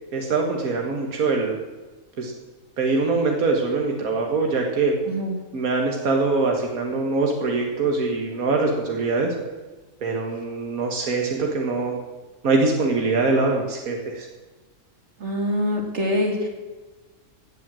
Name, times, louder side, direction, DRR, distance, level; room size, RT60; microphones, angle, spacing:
voice 1, 0.1-1.6 2.2-2.3 2.8-5.0 5.5-9.3 10.0-12.0 12.4-14.3, right 3 dB, 85° right, 1 dB, 1.9 m, -23 dB
voice 2, 5.1-5.4 15.2-16.5, left 1 dB, 55° right, 2 dB, 2.6 m, -24 dB
16.5 x 7.7 x 7.5 m, 1.2 s
omnidirectional pair, 1.5 m